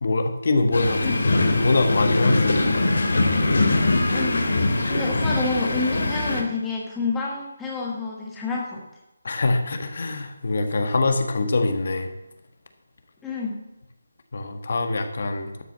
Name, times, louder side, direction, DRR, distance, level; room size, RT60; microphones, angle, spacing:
voice 1, 0.0-1.2 1.5-2.8 9.2-12.1 14.3-15.5, left 2 dB, 50° left, 7 dB, 1.4 m, -24 dB
sound 1, 0.7-6.4, left 2 dB, 75° left, 2.7 m, -22 dB
voice 2, 1.0-1.3 4.1-4.5 4.9-8.8 13.2-13.5, left 3 dB, 5° left, -4 dB, 1.3 m, -29 dB
12.5 x 5.9 x 7.3 m, 0.96 s
figure-of-eight pair, 170°, 0 cm